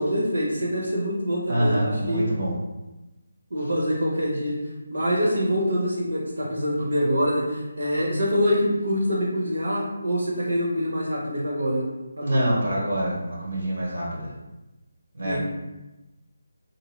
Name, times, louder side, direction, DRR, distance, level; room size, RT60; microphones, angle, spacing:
voice 1, 0.0-2.2 3.5-4.5 4.9-11.9 12.2-12.4 15.2-15.4, equal, 85° right, -4 dB, 1.2 m, -25 dB
voice 2, 1.5-2.5 12.2-14.3 15.1-15.4, right 1 dB, 65° right, -4 dB, 1.0 m, -26 dB
2.7 x 2.2 x 3.2 m, 1.0 s
figure-of-eight pair, 170°, 0 cm